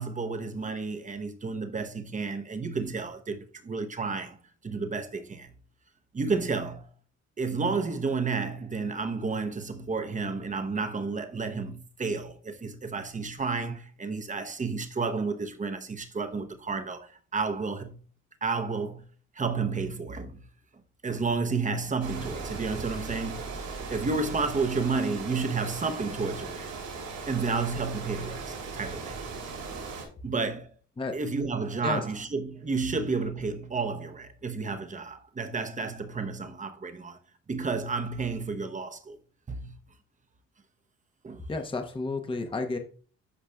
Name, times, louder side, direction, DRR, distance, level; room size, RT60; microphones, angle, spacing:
voice 1, 0.0-4.4 4.6-5.5 6.1-6.9 7.4-18.0 18.4-19.1 19.4-20.5 21.0-23.5 23.9-26.7 27.3-29.3 30.2-30.7 31.1-37.2 37.5-39.2 39.5-39.8 41.2-41.4, right 4 dB, 25° right, 0.9 m, -31 dB
Water, 22.0-30.1, right 4 dB, 85° right, 3.5 m, -38 dB
voice 2, 41.5-42.8, left 3 dB, 15° left, 0.8 m, -31 dB
12.0 x 4.9 x 2.3 m
cardioid pair, 90°, 30 cm